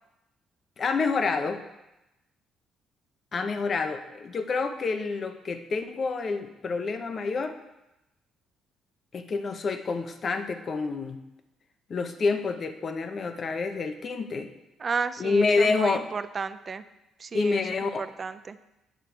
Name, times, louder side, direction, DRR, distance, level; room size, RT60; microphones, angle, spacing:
voice 1, 0.8-1.6 3.3-7.5 9.1-11.2 11.9-14.5 15.2-16.0 17.3-18.0, left 4 dB, 35° left, 8 dB, 0.7 m, -28 dB
voice 2, 14.8-16.8 17.2-18.6, right 5 dB, 30° right, 12 dB, 0.4 m, -33 dB
9.0 x 6.6 x 4.6 m, 0.95 s
cardioid pair, 145°, 0 cm